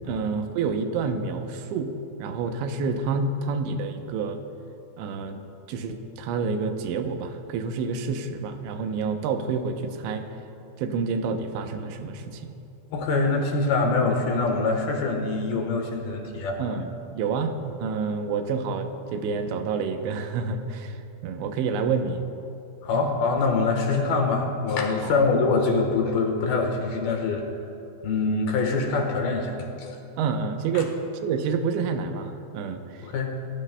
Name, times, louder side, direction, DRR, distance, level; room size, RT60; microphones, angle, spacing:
voice 1, 0.1-1.9 2.2-4.4 5.0-5.4 5.7-10.3 10.8-12.5 16.6-21.0 21.2-22.2 22.9-23.1 25.0-25.3 30.2-33.0, right 5 dB, 85° right, 6 dB, 3.1 m, -28 dB
voice 2, 12.9-16.6 22.8-27.4 28.0-30.0 30.7-30.8 33.0-33.3, left 3 dB, 65° left, 2 dB, 2.8 m, -24 dB
30.0 x 16.0 x 2.2 m, 2.8 s
omnidirectional pair, 5.1 m